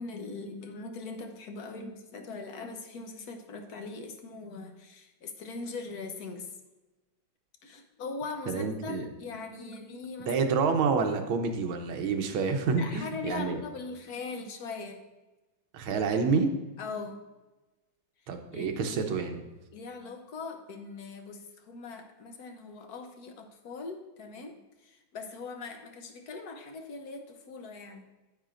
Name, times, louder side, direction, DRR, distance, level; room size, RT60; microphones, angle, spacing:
voice 1, 0.0-6.5 7.6-10.5 12.8-15.0 16.8-17.3 18.5-19.2 19.7-24.6 24.9-28.1, left 4 dB, 60° left, 5 dB, 1.2 m, -41 dB
voice 2, 8.5-9.0 10.3-13.6 15.7-16.5 18.3-19.4, right 5 dB, 85° right, 5 dB, 1.7 m, -28 dB
9.5 x 8.9 x 2.5 m, 1.1 s
omnidirectional pair, 2.2 m